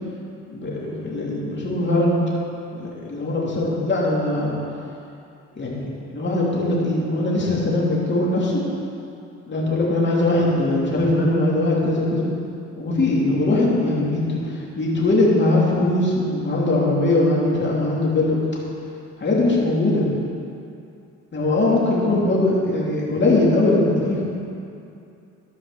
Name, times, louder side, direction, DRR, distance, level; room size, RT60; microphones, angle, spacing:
voice 1, 0.5-2.2 2.7-4.5 5.6-5.9 6.1-8.6 9.5-12.3 12.7-18.4 19.2-20.0 21.3-24.2, left 2 dB, 35° left, -4 dB, 2.7 m, -21 dB
13.0 x 5.0 x 6.7 m, 2.6 s
cardioid pair, 90°, 30 cm